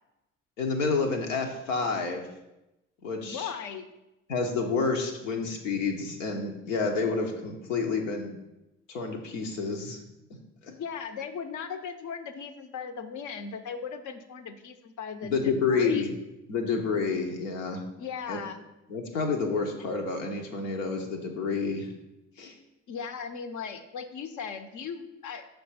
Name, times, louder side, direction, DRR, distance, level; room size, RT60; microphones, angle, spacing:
voice 1, 0.6-2.2 3.0-3.5 4.3-8.3 8.9-10.0 10.6-10.7 15.2-16.1 16.5-17.8 18.3-18.4 18.9-21.9 22.4-22.5, left 4 dB, 85° left, 3 dB, 0.9 m, -29 dB
voice 2, 3.2-3.9 10.7-15.4 15.7-16.2 18.0-18.6 22.9-25.5, left 6 dB, 50° left, 9 dB, 0.7 m, -37 dB
5.8 x 3.5 x 5.6 m, 0.94 s
hypercardioid pair, 50°, 38 cm